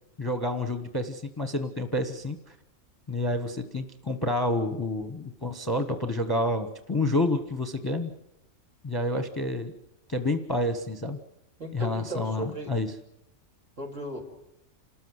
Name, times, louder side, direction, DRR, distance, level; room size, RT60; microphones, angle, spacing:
voice 1, 0.2-2.4 3.1-8.1 8.8-9.7 10.1-11.2 11.7-12.9, left 1 dB, 20° left, 8 dB, 1.0 m, -29 dB
voice 2, 11.6-12.7 13.8-14.2, right 1 dB, 60° right, 0 dB, 4.0 m, -36 dB
28.5 x 13.5 x 8.0 m, 0.85 s
omnidirectional pair, 1.4 m